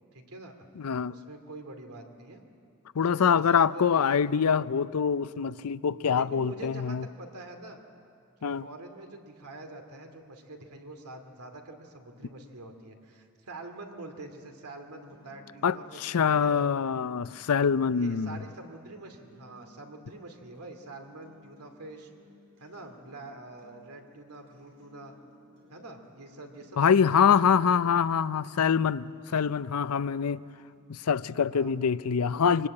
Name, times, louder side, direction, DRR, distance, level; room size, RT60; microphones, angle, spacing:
voice 1, 0.1-0.6 1.1-2.4 3.2-4.2 6.1-7.8 8.4-16.6 17.9-22.1 22.6-25.1 25.7-27.8 31.5-31.7, right 2 dB, 85° right, 2.4 m, -45 dB
voice 2, 0.8-1.2 3.0-7.1 8.4-8.7 15.6-18.4 26.8-30.4 30.9-32.7, left 7 dB, 75° left, 0.5 m, -25 dB
sound 1, 14.8-30.8, equal, 60° right, 6.4 m, -60 dB
24.0 x 19.5 x 8.6 m
head